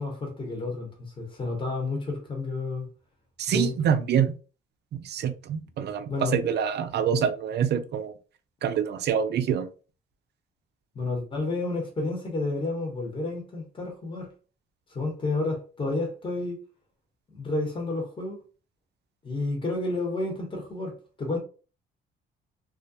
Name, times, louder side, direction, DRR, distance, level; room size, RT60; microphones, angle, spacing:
voice 1, 0.0-2.9 3.5-3.9 6.1-6.4 10.9-14.3 14.9-16.6 17.3-18.4 19.2-21.4, left 2 dB, 25° left, 0.9 m, -30 dB
voice 2, 3.4-4.3 4.9-8.1 8.6-9.7, right 8 dB, 60° right, 0.4 m, -26 dB
2.4 x 2.2 x 2.6 m
cardioid pair, 90°, 20 cm